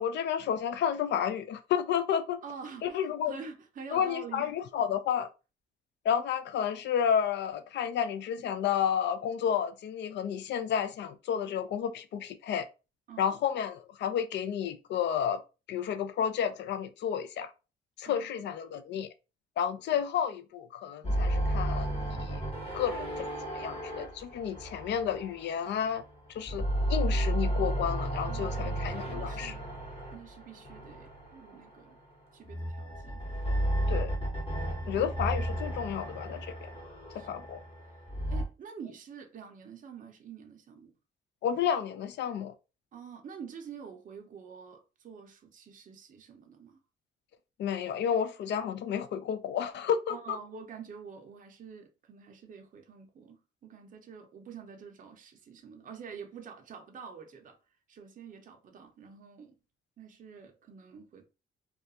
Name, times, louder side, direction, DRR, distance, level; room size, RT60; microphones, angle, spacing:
voice 1, 0.0-2.4 2.8-3.4 3.9-5.3 6.0-12.7 13.2-15.4 15.7-17.5 18.0-19.1 19.6-21.9 22.2-22.4 22.7-26.0 26.3-29.5 33.9-34.1 34.9-36.7 37.1-37.6 41.4-42.5 47.6-50.4, left 8 dB, 65° left, 0.4 m, -31 dB
voice 2, 2.4-4.5 13.1-13.4 18.0-18.5 28.3-29.7 30.1-32.0 32.3-33.2 35.0-35.1 37.1-37.4 38.3-40.9 42.9-46.8 50.1-57.6 57.9-59.6 60.0-61.3, right 6 dB, 40° right, 0.5 m, -47 dB
sound 1, 21.0-26.0 26.4-31.7 32.4-38.4, right 1 dB, 30° left, 1.1 m, -33 dB
2.3 x 2.2 x 2.6 m
cardioid pair, 90°, 20 cm